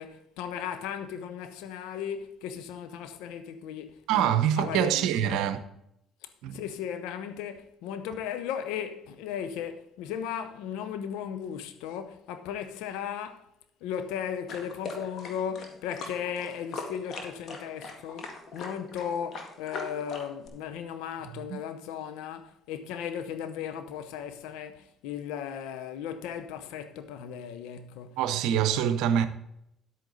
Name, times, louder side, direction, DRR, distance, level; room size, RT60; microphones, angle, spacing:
voice 1, 0.0-5.4 6.2-13.5 13.8-28.2, left 8 dB, 75° left, 0.8 m, -36 dB
voice 2, 4.1-5.6 6.4-6.6 21.5-21.6 28.2-29.3, right 9 dB, 75° right, 0.7 m, -25 dB
sound 1, 14.5-20.5, left 3 dB, 55° left, 1.9 m, -40 dB
10.5 x 8.3 x 4.0 m
hypercardioid pair, 55°, 0 cm